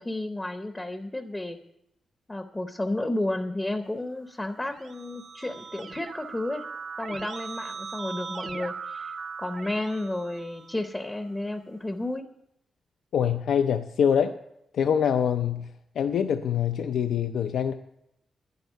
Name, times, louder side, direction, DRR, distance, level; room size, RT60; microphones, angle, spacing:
voice 1, 0.0-1.6 2.3-6.7 7.0-12.3, left 1 dB, 10° left, 0.7 m, -32 dB
Keyboard (musical), 4.5-11.1, right 5 dB, 45° right, 0.6 m, -39 dB
voice 2, 13.1-14.4 14.7-15.7 16.0-17.7, left 8 dB, 75° left, 0.5 m, -24 dB
10.5 x 10.5 x 6.8 m
wide cardioid pair, 165°, 0 cm